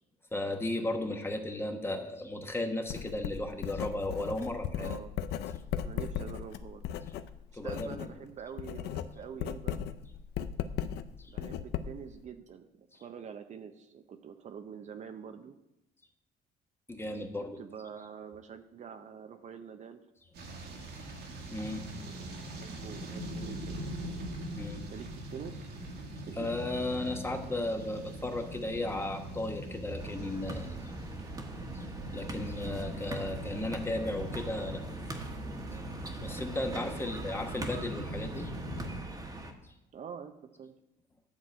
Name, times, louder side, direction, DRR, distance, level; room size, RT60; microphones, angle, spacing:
voice 1, 0.3-4.9 7.5-8.0 11.2-11.3 16.9-17.6 21.5-21.8 24.5-24.8 26.4-30.8 31.7-31.9 32.1-34.8 36.2-38.5 39.6-39.7, left 2 dB, 15° left, 4 dB, 1.2 m, -35 dB
Writing, 2.9-8.1 8.4-12.2, left 9 dB, 80° left, 0.5 m, -37 dB
voice 2, 4.7-5.1 5.8-6.9 7.6-9.9 11.3-15.6 17.4-20.0 22.0-24.0 24.8-25.7 26.3-26.5 37.0-37.2 39.9-40.7, right 7 dB, 45° right, 7 dB, 0.7 m, -46 dB
sound 1, 20.3-39.0, right 1 dB, 75° right, 1.8 m, -42 dB
sound 2, 30.0-39.5, right 2 dB, 20° right, 1.2 m, -42 dB
10.5 x 3.9 x 7.6 m, 0.87 s
cardioid pair, 110°, 17 cm